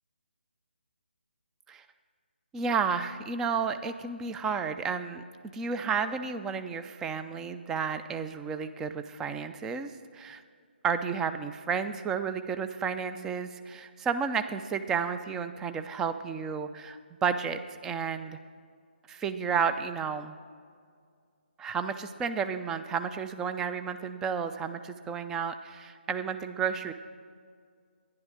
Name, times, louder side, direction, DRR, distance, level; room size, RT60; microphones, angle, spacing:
voice 1, 2.5-10.4 10.8-18.4 19.1-20.3 21.6-26.9, right 6 dB, 10° right, 9 dB, 0.3 m, -32 dB
11.5 x 10.5 x 4.9 m, 2.1 s
figure-of-eight pair, 145°, 6 cm